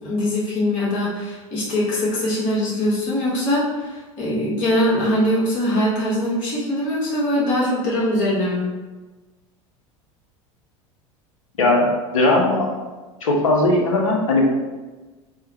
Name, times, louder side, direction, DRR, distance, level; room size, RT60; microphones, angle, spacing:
voice 1, 0.0-8.7, left 1 dB, 55° left, -6 dB, 1.4 m, -22 dB
voice 2, 11.6-12.7 13.2-14.4, left 2 dB, 80° left, -1 dB, 0.7 m, -18 dB
3.4 x 2.1 x 2.9 m, 1.2 s
hypercardioid pair, 80°, 17 cm